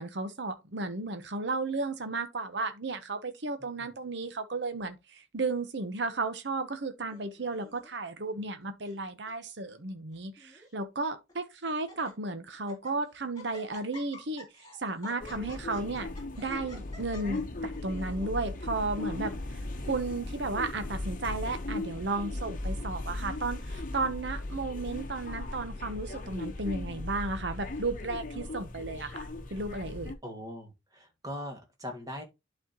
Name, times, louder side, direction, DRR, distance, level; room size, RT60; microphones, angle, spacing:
voice 1, 0.0-16.1 16.4-30.1, right 3 dB, 60° right, 0.9 m, -34 dB
Laughter, 7.1-7.9 8.6-9.0 9.3-9.4 10.1-10.7 11.3-11.4 11.7-12.1 12.5-13.0 13.3-18.1, left 2 dB, 20° left, 3.1 m, -50 dB
sound 1, 15.2-30.1, left 2 dB, 45° left, 1.0 m, -37 dB
voice 2, 30.2-32.2, equal, 20° right, 1.8 m, -40 dB
11.5 x 4.3 x 2.9 m
head